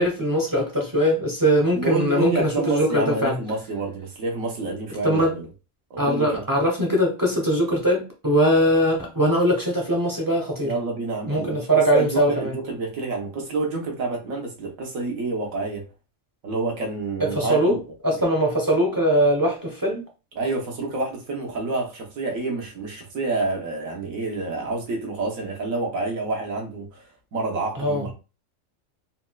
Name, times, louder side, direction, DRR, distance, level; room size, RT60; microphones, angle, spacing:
voice 1, 0.0-3.3 5.0-5.3 6.0-10.7 11.3-12.5 17.2-17.8 18.0-20.0 27.7-28.0, equal, 25° right, 0.5 m, -21 dB
voice 2, 1.7-5.5 5.9-6.4 10.6-15.9 16.4-17.8 20.3-28.1, right 3 dB, 85° right, 1.3 m, -28 dB
4.2 x 2.2 x 2.2 m
omnidirectional pair, 1.4 m